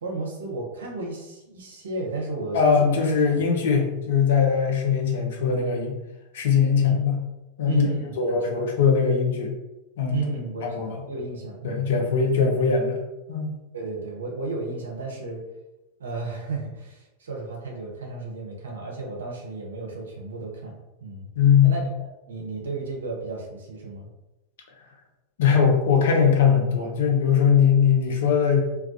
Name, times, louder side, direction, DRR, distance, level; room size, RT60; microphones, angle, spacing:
voice 1, 0.0-2.9 3.3-3.4 6.8-7.0 7.7-8.7 10.1-11.9 13.7-15.4 16.0-21.3 21.6-21.8 22.3-24.1, right 3 dB, 65° right, -1 dB, 0.6 m, -33 dB
voice 2, 2.5-6.0 6.3-7.2 7.6-7.9 8.2-9.5 10.0-10.2 10.6-11.0 11.6-13.0 13.3-13.5 21.4-21.9 25.4-28.6, left 6 dB, 60° left, 1 dB, 0.5 m, -20 dB
2.3 x 2.2 x 2.4 m, 0.99 s
figure-of-eight pair, 90°, 0 cm